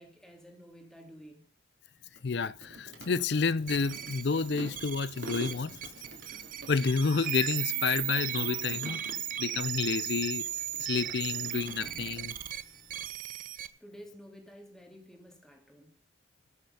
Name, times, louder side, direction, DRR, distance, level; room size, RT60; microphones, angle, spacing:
voice 1, 0.0-1.5 13.8-15.9, equal, 5° left, 2.4 m, -51 dB
sound 1, 1.9-9.6 10.0-12.2, right 1 dB, 70° right, 2.9 m, -48 dB
voice 2, 2.2-5.7 6.7-9.0 9.4-10.5 10.8-12.3, left 5 dB, 65° left, 0.5 m, -30 dB
sound 2, 3.6-13.1, left 3 dB, 30° left, 3.9 m, -61 dB
sound 3, 3.7-13.7, right 12 dB, 45° right, 0.8 m, -36 dB
19.0 x 6.8 x 5.6 m
head